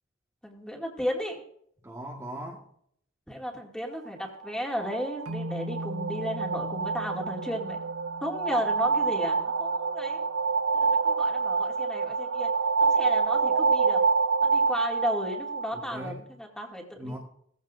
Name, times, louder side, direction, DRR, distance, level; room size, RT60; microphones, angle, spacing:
voice 1, 0.4-1.4 3.3-7.8 8.2-10.2 10.7-12.5 12.8-14.0 14.4-17.2, equal, 5° left, 0 dB, 2.3 m, -34 dB
voice 2, 1.8-2.6 15.7-16.3 17.0-17.2, equal, 15° right, -4 dB, 1.5 m, -39 dB
sound 1, 4.4-16.1, right 4 dB, 60° right, 0.5 m, -27 dB
sound 2, 5.3-9.6, equal, 85° right, 0.9 m, -40 dB
18.0 x 15.5 x 2.6 m, 0.68 s
head